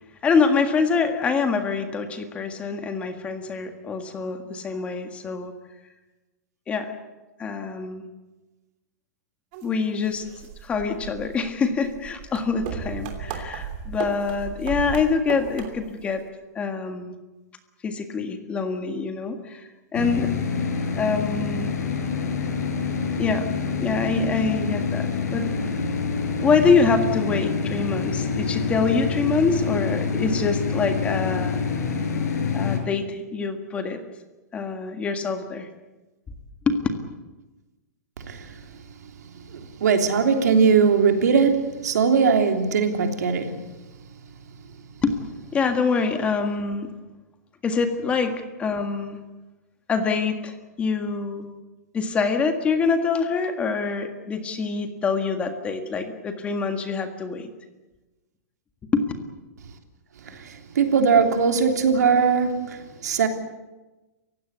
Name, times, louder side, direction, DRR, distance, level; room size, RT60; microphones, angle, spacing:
voice 1, 0.2-5.5 6.7-6.9 7.4-8.1 9.6-10.3 10.6-16.2 16.6-17.2 17.8-20.3 21.0-21.7 23.2-23.5 23.8-25.1 25.3-25.7 26.4-31.6 32.5-34.0 34.5-35.7 36.7-36.9 45.0-45.2 45.5-46.9 47.6-48.3 48.6-49.2 49.9-51.5 51.9-57.5 58.9-59.0, left 5 dB, 15° left, 1.7 m, -25 dB
sound 1, 9.5-9.6 10.1-16.0, right 6 dB, 35° right, 3.1 m, -35 dB
sound 2, 19.9-32.8, left 5 dB, 75° left, 6.5 m, -26 dB
voice 2, 38.3-38.8 39.2-43.7 60.2-63.3, right 5 dB, 80° right, 3.3 m, -21 dB
28.5 x 16.0 x 8.2 m
hypercardioid pair, 165°, 9 cm